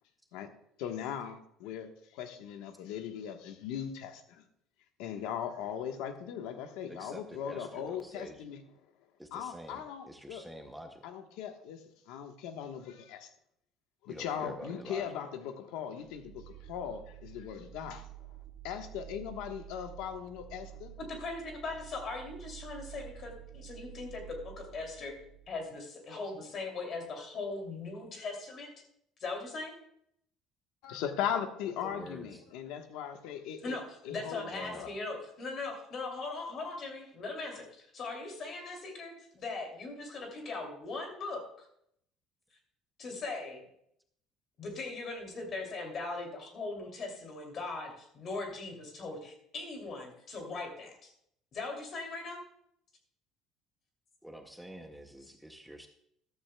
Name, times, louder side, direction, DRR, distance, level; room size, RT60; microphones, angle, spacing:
voice 1, 0.8-4.4 5.0-8.6 9.3-10.4 11.0-11.8 12.1-13.3 14.0-18.1 18.6-20.9 30.8-33.8 34.0-34.9, left 8 dB, 85° left, 6 dB, 1.2 m, -39 dB
voice 2, 6.9-8.5 9.2-11.1 14.1-15.1 31.8-32.4 34.5-34.9 54.2-55.9, equal, ahead, 4 dB, 0.6 m, -47 dB
sound 1, 16.0-25.6, right 13 dB, 85° right, 2.5 m, -50 dB
voice 3, 21.2-25.2 25.5-28.7 29.2-29.8 33.6-41.7 43.0-43.6 44.6-51.1 51.5-52.4, left 3 dB, 35° left, 2 dB, 2.7 m, -40 dB
14.0 x 12.5 x 2.2 m, 0.72 s
cardioid pair, 175°, 0 cm